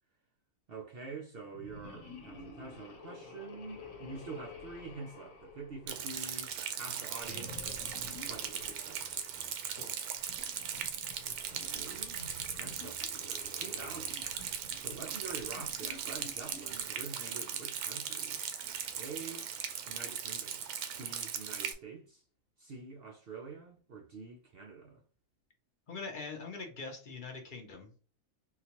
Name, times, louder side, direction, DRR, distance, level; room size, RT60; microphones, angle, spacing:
voice 1, 0.7-7.9 8.2-9.0 11.2-12.2 12.6-14.3 14.8-18.4 19.0-19.5 19.9-20.6 21.0-22.2 22.6-25.0, right 4 dB, 60° right, 0.6 m, -46 dB
sound 1, 1.5-6.4 7.2-9.5 10.2-17.0, left 2 dB, 65° left, 1.1 m, -50 dB
Rain, 5.9-21.7, right 8 dB, 85° right, 1.1 m, -39 dB
voice 2, 25.9-27.9, left 4 dB, 45° left, 0.7 m, -43 dB
3.8 x 2.3 x 2.9 m
omnidirectional pair, 1.5 m